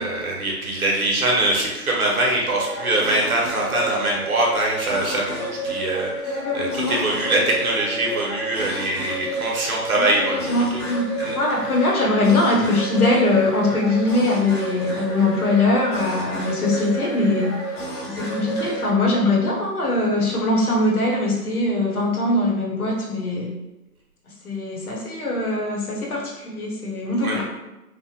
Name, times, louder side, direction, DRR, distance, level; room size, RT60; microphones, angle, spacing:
voice 1, 0.0-10.8 11.2-11.3 27.2-27.4, right 2 dB, 60° right, -2 dB, 0.9 m, -23 dB
sound 1, 2.6-18.9, right 1 dB, 90° left, 1.5 m, -30 dB
voice 2, 6.2-7.4 10.0-17.6 18.0-23.5 24.4-27.4, left 2 dB, 65° left, -2 dB, 1.0 m, -22 dB
3.3 x 2.0 x 2.9 m, 0.97 s
figure-of-eight pair, 160°, 48 cm